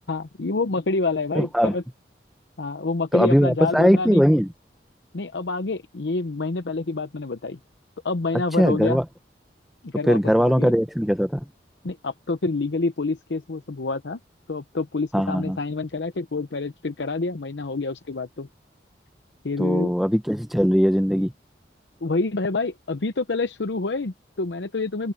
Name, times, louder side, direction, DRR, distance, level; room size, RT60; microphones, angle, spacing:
voice 1, 0.1-1.8 2.6-4.3 5.1-7.6 8.0-9.0 9.8-10.7 11.8-14.2 14.5-18.5 19.4-19.9 22.0-25.1, left 3 dB, 80° left, 0.8 m, -27 dB
voice 2, 1.3-1.7 3.1-4.5 8.6-9.0 10.1-11.4 15.1-15.6 19.6-21.3, equal, ahead, 0.7 m, -20 dB
open air
head